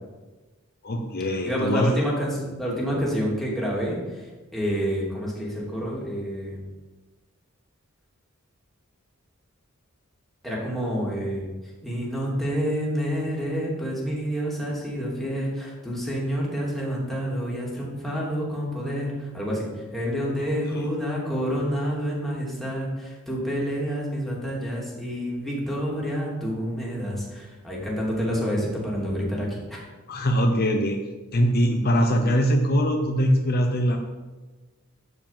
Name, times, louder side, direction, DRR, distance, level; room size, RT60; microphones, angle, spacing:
voice 1, 0.8-1.9 20.7-20.9 30.1-31.0 31.3-34.0, equal, 50° left, 4 dB, 0.9 m, -22 dB
voice 2, 1.4-4.2 4.5-6.6 10.4-11.5 11.8-29.8, equal, ahead, -5 dB, 2.9 m, -28 dB
12.5 x 5.0 x 7.5 m, 1.3 s
head